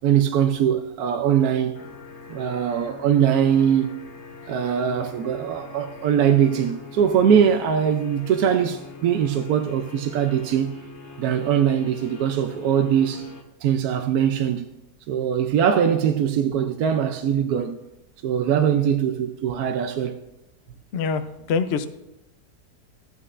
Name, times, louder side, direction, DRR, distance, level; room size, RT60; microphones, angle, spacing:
voice 1, 0.0-1.7 2.3-3.9 4.5-10.7 11.2-13.3 13.6-14.7 15.1-17.8 18.2-20.2, right 8 dB, 70° right, 1.0 m, -21 dB
sound 1, 1.7-13.4, left 4 dB, 50° left, 1.0 m, -43 dB
voice 2, 20.9-21.2 21.5-21.9, left 5 dB, 75° left, 0.6 m, -23 dB
13.5 x 8.7 x 2.5 m
omnidirectional pair, 1.8 m